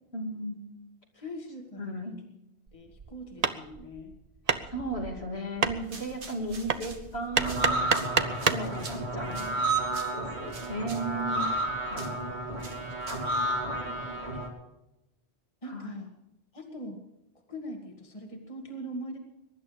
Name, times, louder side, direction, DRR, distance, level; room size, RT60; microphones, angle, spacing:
voice 1, 0.1-0.8 1.8-2.1 4.7-7.8 8.5-9.7 10.1-11.5 11.8-12.2 13.8-14.5 15.6-15.9, right 1 dB, 65° left, 1 dB, 3.0 m, -36 dB
voice 2, 1.1-2.1 2.7-4.1 15.6-16.2 16.5-17.0 17.5-19.2, equal, 30° left, 3 dB, 2.1 m, -42 dB
Hammer, 2.7-8.7, right 5 dB, 40° right, 0.9 m, -30 dB
sound 1, 5.8-13.4, right 4 dB, 85° right, 2.1 m, -48 dB
sound 2, 7.4-14.5, right 1 dB, 70° right, 3.5 m, -31 dB
22.5 x 11.0 x 5.1 m, 0.88 s
omnidirectional pair, 1.1 m